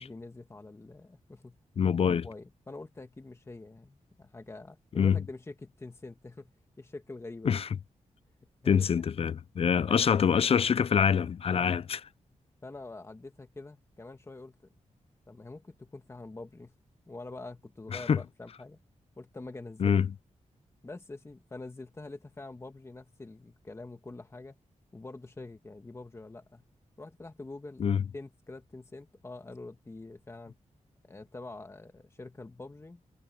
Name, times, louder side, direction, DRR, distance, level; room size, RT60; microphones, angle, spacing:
voice 1, 0.0-1.6 2.0-6.5 6.8-7.6 8.6-9.3 9.9-10.1 12.6-14.6 15.3-16.7 17.1-18.8 19.2-20.0 20.8-24.6 24.9-26.7 27.0-30.6 31.0-33.0, left 2 dB, 20° left, 1.7 m, -45 dB
voice 2, 1.8-2.2 5.0-5.2 7.5-7.7 8.7-12.0 17.9-18.2 19.8-20.1 27.8-28.0, left 7 dB, 50° left, 0.5 m, -25 dB
wide cardioid pair, 135°, 13 cm